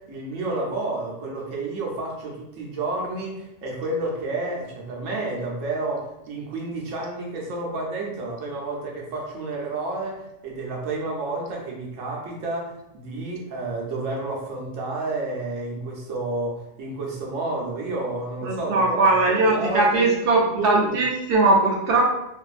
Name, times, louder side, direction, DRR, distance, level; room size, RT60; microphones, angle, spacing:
voice 1, 0.0-16.5 16.8-20.2 20.6-21.0, right 2 dB, 85° right, -2 dB, 1.1 m, -30 dB
voice 2, 18.4-22.0, right 2 dB, 60° right, -1 dB, 0.7 m, -20 dB
2.5 x 2.5 x 2.4 m, 0.85 s
omnidirectional pair, 1.3 m